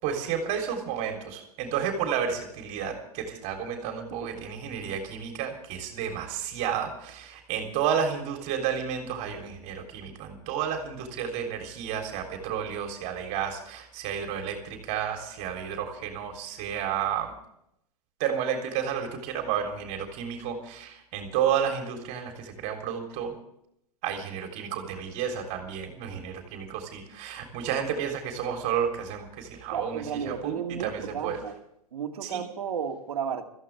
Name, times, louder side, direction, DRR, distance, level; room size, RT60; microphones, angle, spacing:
voice 1, 0.0-17.3 18.2-23.3 24.0-31.4 32.2-32.4, right 8 dB, 35° right, 4 dB, 3.6 m, -31 dB
voice 2, 29.7-31.6 31.9-33.4, right 7 dB, 70° right, 5 dB, 2.2 m, -33 dB
25.0 x 15.0 x 3.5 m, 0.76 s
hypercardioid pair, 115°, 20 cm